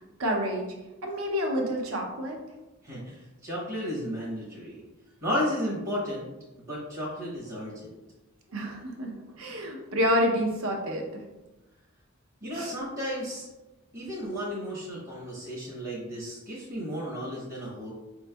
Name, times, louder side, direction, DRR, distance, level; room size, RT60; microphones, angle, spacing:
voice 1, 0.2-0.7 1.0-2.4 8.5-11.1 12.5-12.7, equal, 85° right, 2 dB, 0.7 m, -28 dB
voice 2, 2.8-4.8 5.2-6.3 6.6-7.9 12.4-13.5 13.9-17.9, equal, 45° right, -5 dB, 0.9 m, -33 dB
5.0 x 3.1 x 2.2 m, 1.1 s
head